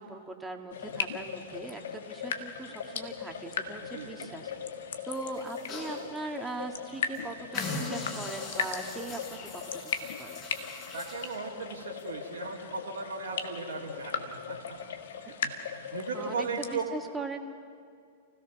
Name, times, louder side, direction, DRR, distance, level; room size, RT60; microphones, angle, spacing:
voice 1, 0.0-4.5 5.1-10.5 16.1-17.5, right 2 dB, 10° right, 3 dB, 2.0 m, -40 dB
sound 1, 0.7-16.8, left 7 dB, 65° left, 1.5 m, -38 dB
voice 2, 3.9-4.3 10.9-14.6 15.4-15.5 15.9-16.8, right 4 dB, 70° right, -4 dB, 2.3 m, -37 dB
sound 2, 5.1-6.0 6.5-6.6 6.9-7.2 7.5-11.4 12.0-12.1, left 3 dB, 35° left, 6.6 m, -40 dB
29.0 x 16.5 x 6.1 m, 2.3 s
figure-of-eight pair, 100°, 0 cm